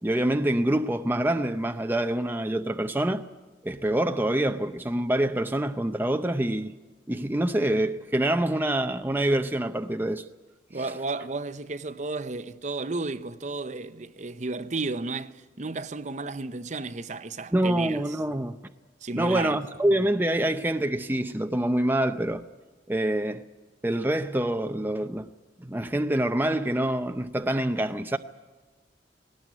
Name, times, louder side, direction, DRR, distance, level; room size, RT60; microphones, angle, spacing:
voice 1, 0.0-3.2 3.6-6.7 7.1-10.3 17.5-18.6 19.2-22.4 22.9-23.4 23.8-25.3 25.6-28.2, right 1 dB, 10° right, 0.6 m, -26 dB
voice 2, 10.7-18.2 19.0-19.6, right 3 dB, 40° right, 0.8 m, -33 dB
19.0 x 18.5 x 9.4 m
head